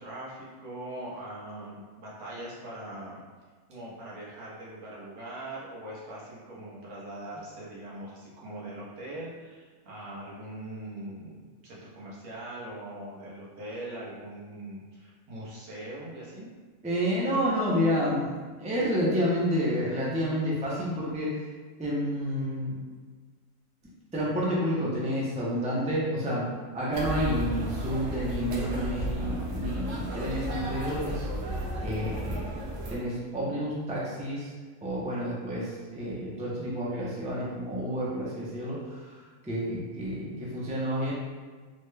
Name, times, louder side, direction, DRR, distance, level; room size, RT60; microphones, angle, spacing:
voice 1, 0.0-3.2 3.7-16.5, right 1 dB, 85° right, -6 dB, 1.4 m, -41 dB
voice 2, 16.8-21.3 21.8-22.8 24.1-31.3 31.8-32.4 32.9-34.5 34.8-41.1, equal, 10° right, -7 dB, 0.3 m, -29 dB
sound 1, 26.9-33.0, right 1 dB, 70° right, 0.9 m, -34 dB
3.5 x 2.2 x 3.2 m, 1.5 s
omnidirectional pair, 1.5 m